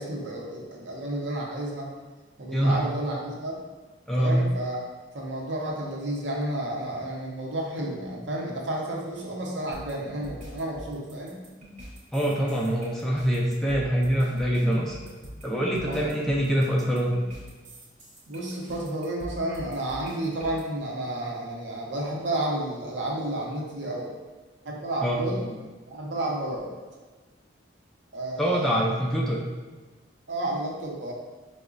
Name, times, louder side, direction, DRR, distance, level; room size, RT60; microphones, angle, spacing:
voice 1, 0.0-1.9 2.4-3.6 4.2-4.9 5.1-11.4 15.8-16.1 18.3-24.1 24.6-26.7 28.1-28.8 30.3-31.1, right 1 dB, 75° right, -2 dB, 0.7 m, -31 dB
voice 2, 4.1-4.4 12.1-15.0 15.4-17.1 25.0-25.2 28.4-29.4, equal, ahead, -4 dB, 0.3 m, -24 dB
sound 1, 9.7-20.6, equal, 40° right, 0.8 m, -43 dB
4.7 x 2.1 x 2.4 m, 1.3 s
head